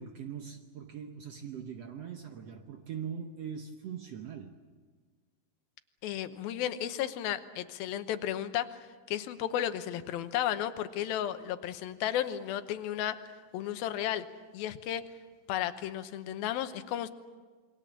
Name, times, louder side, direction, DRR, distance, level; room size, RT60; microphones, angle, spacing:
voice 1, 0.0-4.6, right 7 dB, 70° right, 1.5 m, -41 dB
voice 2, 6.0-8.8 9.1-13.2 13.5-14.3 14.5-15.0 15.5-17.1, left 11 dB, 85° left, 2.8 m, -33 dB
27.5 x 22.5 x 7.4 m
omnidirectional pair, 4.2 m